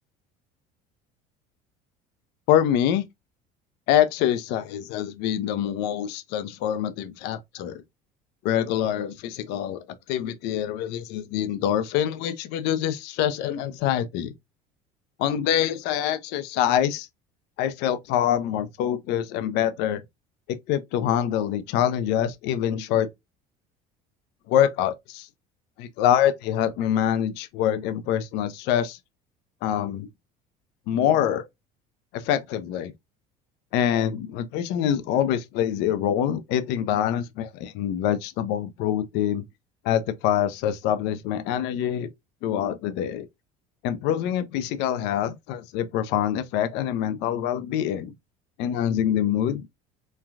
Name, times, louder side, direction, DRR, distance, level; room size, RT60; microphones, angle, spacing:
voice 1, 2.5-3.0 3.9-7.8 8.4-14.3 15.2-17.1 17.6-20.0 20.5-23.1 24.5-25.3 25.8-29.0 29.6-30.1 30.9-31.5 32.1-32.9 33.7-39.4 39.8-42.1 42.4-43.3 43.8-48.1 48.6-49.6, left 10 dB, 65° left, 0.4 m, -25 dB
3.1 x 2.3 x 2.3 m
supercardioid pair, 85°, 19 cm